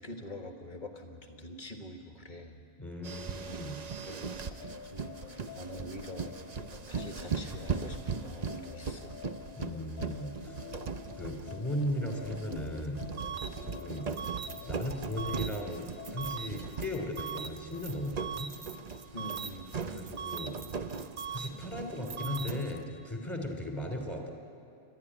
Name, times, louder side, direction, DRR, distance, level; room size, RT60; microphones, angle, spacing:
voice 1, 0.0-2.6 4.0-6.3 6.9-9.2 19.1-19.7 23.4-23.6, left 1 dB, 35° left, 4 dB, 1.7 m, -45 dB
voice 2, 2.8-3.8 9.5-10.7 11.2-13.0 13.6-14.1 14.6-18.5 19.8-20.5 21.3-24.3, left 1 dB, 10° left, 2 dB, 2.9 m, -37 dB
sound 1, 3.0-22.8, right 5 dB, 40° right, 0.6 m, -40 dB
sound 2, 4.5-16.4, left 8 dB, 85° left, 1.4 m, -49 dB
sound 3, 13.2-13.5 14.2-14.5 15.2-15.5 16.2-16.5 17.2-17.5 18.2-18.5 19.2-19.5 20.2-20.5 21.2-21.5 22.2-22.5, right 7 dB, 85° right, 1.4 m, -38 dB
27.5 x 12.0 x 10.0 m, 2.6 s
omnidirectional pair, 1.4 m